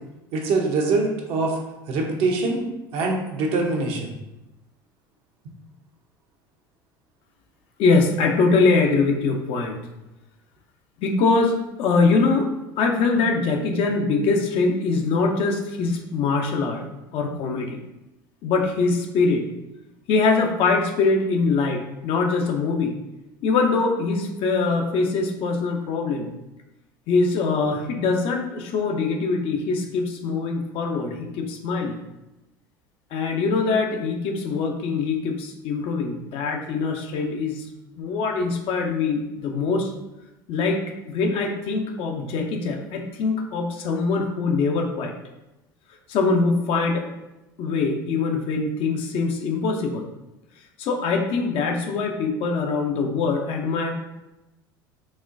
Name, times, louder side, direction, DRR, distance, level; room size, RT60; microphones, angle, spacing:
voice 1, 0.3-1.6 1.9-2.6 2.9-4.1, right 3 dB, 55° right, 1 dB, 0.7 m, -23 dB
voice 2, 7.8-9.8 11.0-12.5 12.8-16.8 17.1-17.8 18.4-19.5 20.1-22.9 23.4-26.3 27.1-32.0 33.1-37.7 37.9-39.9 40.5-40.8 41.1-45.1 46.1-47.0 47.6-50.1 50.8-53.9, left 4 dB, 55° left, 3 dB, 0.6 m, -23 dB
4.1 x 2.2 x 2.5 m, 0.96 s
hypercardioid pair, 75°, 12 cm